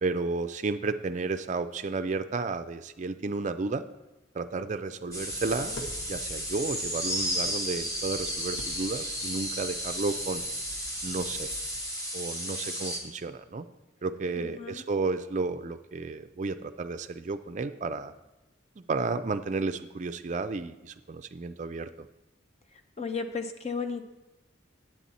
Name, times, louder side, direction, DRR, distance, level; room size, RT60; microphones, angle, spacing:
voice 1, 0.0-3.8 4.3-5.8 6.1-10.4 11.0-11.5 12.1-13.6 14.0-18.1 18.8-22.1, right 3 dB, 40° right, 10 dB, 0.4 m, -32 dB
Tap, 5.1-11.8, equal, 70° left, 1.2 m, -46 dB
sound 1, 5.1-13.0, equal, 15° left, 1.3 m, -33 dB
voice 2, 14.3-14.8 23.0-24.1, left 5 dB, 35° left, 7 dB, 0.6 m, -34 dB
8.8 x 8.4 x 4.1 m, 1.0 s
head